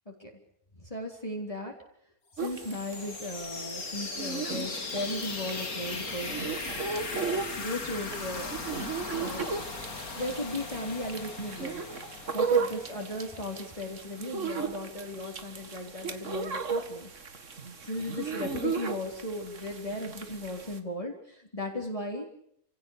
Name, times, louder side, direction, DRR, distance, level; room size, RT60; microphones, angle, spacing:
voice 1, 0.8-1.7 2.4-6.4 7.6-8.6 9.0-9.6 10.1-11.8 12.3-17.1 17.8-22.3, left 1 dB, 25° left, 0 dB, 3.8 m, -36 dB
sound 1, 2.4-14.1, left 3 dB, 85° left, 3.0 m, -39 dB
sound 2, 2.4-20.8, right 5 dB, 60° right, 2.2 m, -36 dB
29.0 x 17.0 x 8.7 m, 0.71 s
omnidirectional pair, 1.5 m